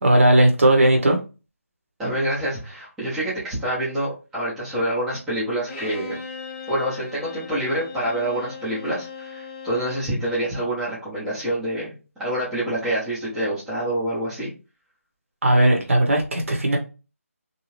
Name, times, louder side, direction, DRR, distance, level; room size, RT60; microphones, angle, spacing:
voice 1, 0.0-1.2 15.4-16.8, right 1 dB, 60° right, 1 dB, 1.0 m, -17 dB
voice 2, 2.0-6.2 6.7-14.5, right 1 dB, 5° right, -11 dB, 0.5 m, -27 dB
Bowed string instrument, 5.7-10.2, left 5 dB, 15° left, 1.0 m, -38 dB
2.7 x 2.3 x 3.1 m, 0.31 s
figure-of-eight pair, 170°, 8 cm